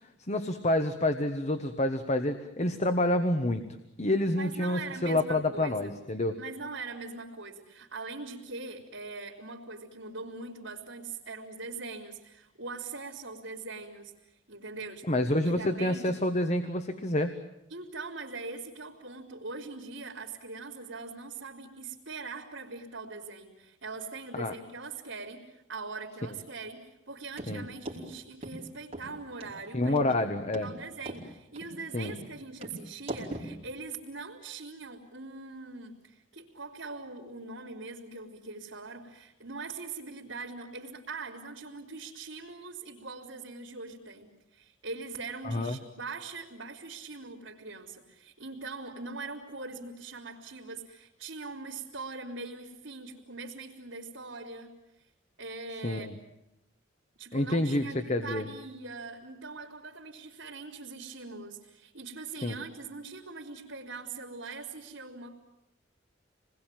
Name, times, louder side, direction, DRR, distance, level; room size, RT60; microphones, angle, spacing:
voice 1, 0.2-3.6 4.0-6.4 15.1-17.4 24.3-24.5 27.5-27.6 29.7-30.7 31.9-32.1 45.4-45.8 55.8-56.1 57.3-58.5 62.4-62.6, left 1 dB, 40° left, 8 dB, 1.3 m, -28 dB
voice 2, 4.3-5.9 6.4-16.1 17.7-30.0 30.4-54.7 55.4-56.1 57.2-65.4, right 3 dB, 85° right, -6 dB, 3.5 m, -42 dB
sound 1, 27.4-27.5 27.8-28.0 28.4-28.5 28.9-29.1 29.4-29.5 30.0-30.1 30.5-30.7 31.0-31.2 31.6-31.7 32.0-32.2 32.6-32.8 33.1-33.5, right 1 dB, 30° right, 5.2 m, -39 dB
27.5 x 20.5 x 9.2 m, 0.86 s
head